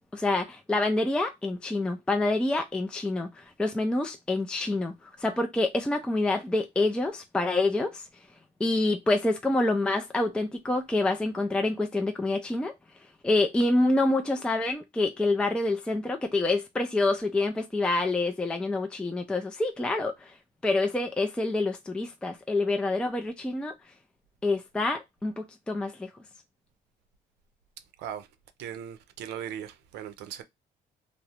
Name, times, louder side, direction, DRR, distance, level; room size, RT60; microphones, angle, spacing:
voice 1, 0.1-4.9 5.2-8.0 8.6-12.7 13.2-20.3 20.6-23.7 24.4-26.1, left 2 dB, 5° left, 0.3 m, -27 dB
voice 2, 28.6-30.4, right 9 dB, 85° right, 0.5 m, -38 dB
2.4 x 2.0 x 2.8 m
cardioid pair, 110°, 17 cm